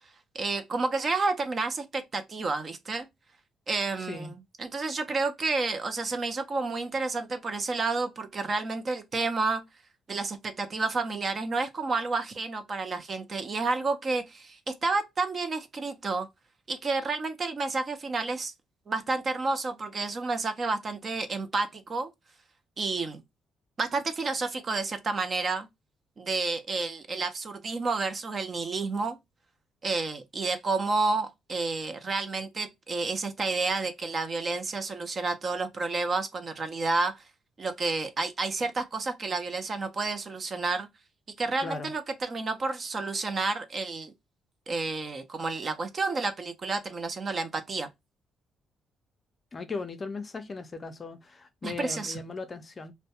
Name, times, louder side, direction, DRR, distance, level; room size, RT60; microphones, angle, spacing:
voice 1, 0.3-3.1 3.7-9.6 10.1-16.3 16.7-18.5 18.9-22.1 22.8-23.2 23.8-25.7 26.2-29.2 29.8-37.2 37.6-40.9 41.4-44.1 44.7-47.9 51.6-52.2, right 3 dB, 40° right, 0.5 m, -30 dB
voice 2, 4.0-4.3 41.6-41.9 49.5-52.9, left 4 dB, 35° left, 0.4 m, -38 dB
2.2 x 2.1 x 2.8 m
cardioid pair, 90°, 0 cm